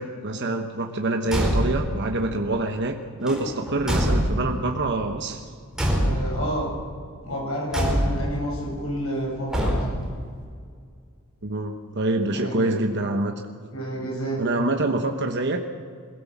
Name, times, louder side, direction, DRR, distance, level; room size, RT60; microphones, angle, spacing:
voice 1, 0.0-5.5 11.4-13.3 14.4-15.7, right 2 dB, 55° right, 4 dB, 1.2 m, -26 dB
Car / Truck / Slam, 1.2-2.0 3.2-4.7 5.7-6.5 7.7-8.4 9.5-10.2, equal, 5° right, 4.5 m, -24 dB
voice 2, 6.0-6.7 7.2-9.8 12.3-12.8 13.7-14.4, right 1 dB, 70° left, -1 dB, 7.0 m, -29 dB
22.0 x 16.5 x 7.4 m, 2.1 s
head